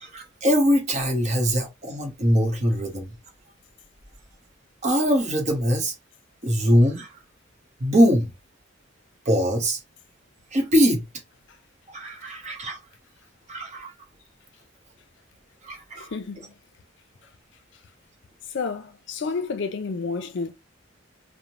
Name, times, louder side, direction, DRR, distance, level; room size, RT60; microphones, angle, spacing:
voice 1, 0.0-3.1 4.8-5.9 6.4-7.1 7.8-8.3 9.3-9.8 10.5-11.0 11.9-12.8 13.5-13.9 15.6-16.1, equal, 35° right, 0.7 m, -22 dB
voice 2, 16.0-16.5 18.5-20.5, left 4 dB, 60° left, 0.4 m, -30 dB
2.6 x 2.0 x 2.9 m
head